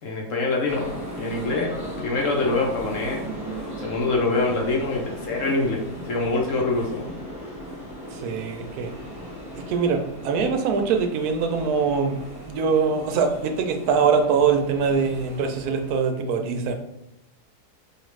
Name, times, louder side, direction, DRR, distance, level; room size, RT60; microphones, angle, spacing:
voice 1, 0.0-0.9 1.2-3.2 3.8-7.1, left 3 dB, 60° left, 0 dB, 1.0 m, -25 dB
sound 1, 0.7-15.9, equal, 5° right, 0.9 m, -37 dB
voice 2, 8.1-8.9 9.6-16.7, right 5 dB, 75° right, 5 dB, 1.0 m, -23 dB
5.0 x 2.4 x 3.1 m, 0.89 s
omnidirectional pair, 1.7 m